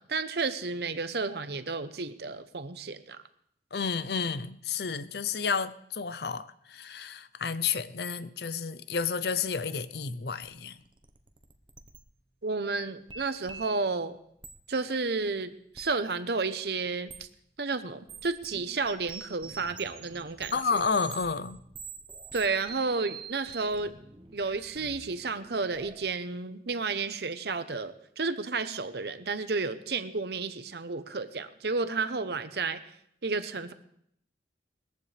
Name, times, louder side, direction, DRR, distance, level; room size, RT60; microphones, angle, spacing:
voice 1, 0.0-3.2 12.4-14.2 14.7-17.3 17.6-20.8 22.3-24.0 24.3-32.8 33.2-33.7, right 4 dB, 65° right, 11 dB, 0.8 m, -32 dB
voice 2, 3.7-10.8 20.5-21.6, left 5 dB, 60° left, 14 dB, 0.6 m, -31 dB
sound 1, 10.4-10.5 10.8-12.0 13.1-13.9 14.4-14.5 15.7-15.9 17.1-17.2 18.1-26.1, right 6 dB, 25° right, 0.9 m, -46 dB
20.5 x 14.5 x 3.4 m, 0.71 s
head